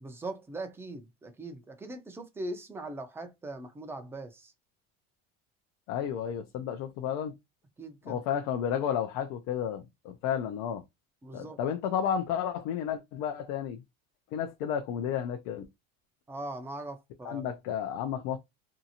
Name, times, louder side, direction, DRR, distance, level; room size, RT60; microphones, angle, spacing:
voice 1, 0.0-4.5 7.8-8.4 11.2-11.6 16.3-17.5, right 2 dB, 10° right, 0.4 m, -40 dB
voice 2, 5.9-7.4 8.1-10.8 11.3-13.8 14.3-15.7 17.2-18.4, left 8 dB, 75° left, 0.5 m, -32 dB
2.7 x 2.4 x 2.7 m
cardioid pair, 150°, 29 cm